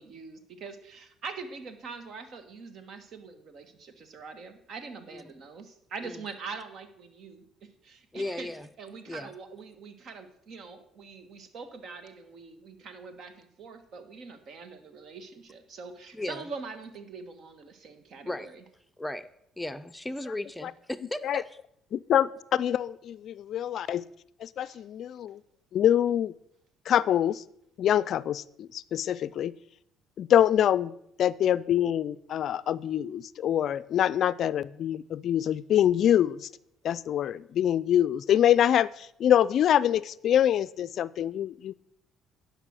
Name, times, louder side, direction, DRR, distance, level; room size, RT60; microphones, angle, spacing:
voice 1, 0.0-8.5 8.8-18.6 23.8-23.9 24.6-24.8, right 4 dB, 60° right, 1.4 m, -43 dB
voice 2, 8.1-8.7 9.1-9.3 16.1-16.5 18.2-18.5 19.0-19.3 19.6-21.5, left 1 dB, 10° left, 0.6 m, -36 dB
voice 3, 21.9-24.0 24.4-25.4 25.7-26.3 26.9-27.4 27.8-29.5 30.2-30.9 31.2-36.5 36.8-41.7, left 10 dB, 60° left, 0.3 m, -25 dB
11.0 x 5.4 x 6.3 m
supercardioid pair, 65°, 0 cm